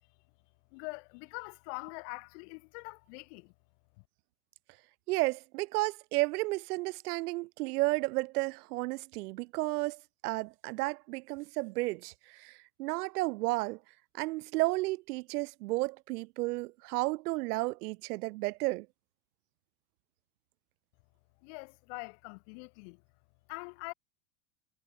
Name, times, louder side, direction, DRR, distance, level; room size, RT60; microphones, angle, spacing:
voice 1, 0.7-3.5 4.0-4.1 21.4-23.0 23.5-23.9, left 35 dB, 45° left, 2.7 m, -44 dB
voice 2, 5.1-12.5 12.8-13.8 14.2-18.9, right 22 dB, 75° right, 0.6 m, -32 dB
supercardioid pair, 180°, 46 cm